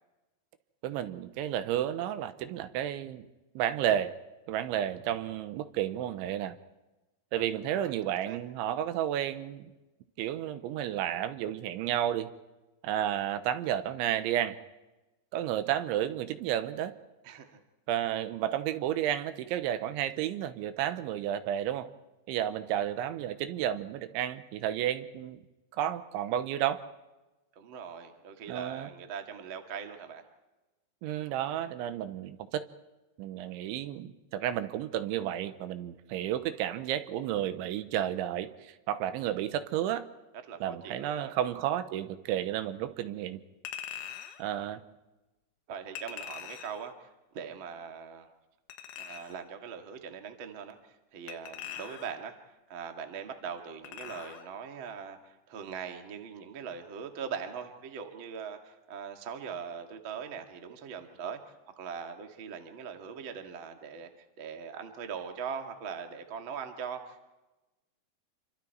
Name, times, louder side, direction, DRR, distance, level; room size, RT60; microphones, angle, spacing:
voice 1, 0.8-3.3 3.6-4.1 4.5-6.6 7.3-9.6 10.2-12.3 12.8-14.6 15.3-16.9 17.9-21.9 22.3-25.4 25.7-26.9 28.5-28.9 31.0-32.7 33.2-40.1 40.6-43.4 44.4-44.8, right 11 dB, 85° right, 11 dB, 3.3 m, -32 dB
voice 2, 17.2-17.6 27.5-30.2 40.5-41.4 45.7-48.3 49.0-50.8 51.1-67.3, right 6 dB, 50° right, 5 dB, 1.5 m, -41 dB
Chink clink, 43.7-44.4 46.0-46.9 48.7-49.5 51.3-52.3 53.8-54.5 54.9-55.0, left 9 dB, 85° left, 3.6 m, -43 dB
28.0 x 24.5 x 4.6 m, 1.1 s
omnidirectional pair, 5.4 m